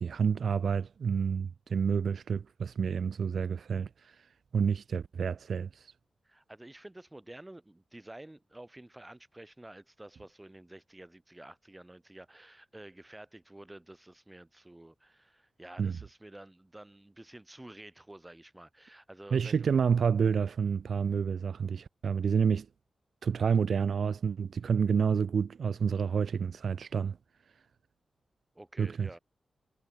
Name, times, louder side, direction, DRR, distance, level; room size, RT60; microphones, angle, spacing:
voice 1, 0.0-4.2 4.5-5.9 15.8-15.9 19.3-22.7 23.2-27.2 28.8-29.1, right 6 dB, 75° right, 0.3 m, -29 dB
voice 2, 6.2-19.7 28.5-29.2, right 1 dB, 15° right, 1.4 m, -50 dB
cardioid pair, 70°, 0 cm